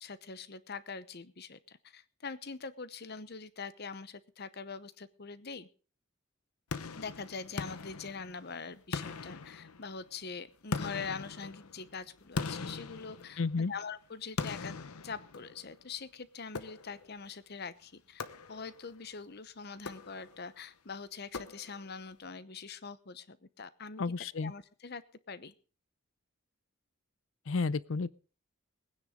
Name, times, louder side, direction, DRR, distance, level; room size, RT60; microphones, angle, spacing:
voice 1, 0.0-5.7 7.0-13.4 13.7-14.7 15.0-18.2 18.5-24.0 24.4-25.5, left 5 dB, 50° left, 15 dB, 0.9 m, -43 dB
sound 1, 6.7-8.5 8.9-10.1 10.7-13.7 14.4-15.8 16.5-17.2 18.2-18.9 19.7-20.5 21.3-22.0, left 4 dB, 90° left, 0.9 m, -41 dB
voice 2, 13.4-13.7 24.0-24.5 27.5-28.1, left 4 dB, 65° left, 19 dB, 0.6 m, -31 dB
21.0 x 9.8 x 3.7 m, 0.38 s
head